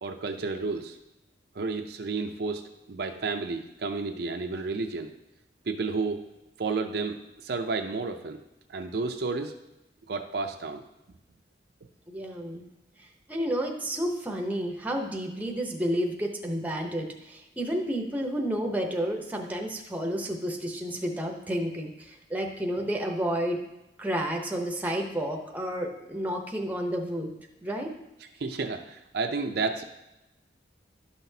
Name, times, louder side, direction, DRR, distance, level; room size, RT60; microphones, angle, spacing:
voice 1, 0.0-1.0 1.5-5.1 5.7-6.3 6.6-8.4 8.7-9.5 10.1-10.8 28.4-29.8, right 4 dB, 60° right, 5 dB, 0.5 m, -31 dB
voice 2, 12.1-12.7 13.0-23.6 24.0-27.3 27.6-27.9, equal, 10° right, 2 dB, 0.7 m, -31 dB
11.5 x 5.9 x 2.7 m, 0.95 s
head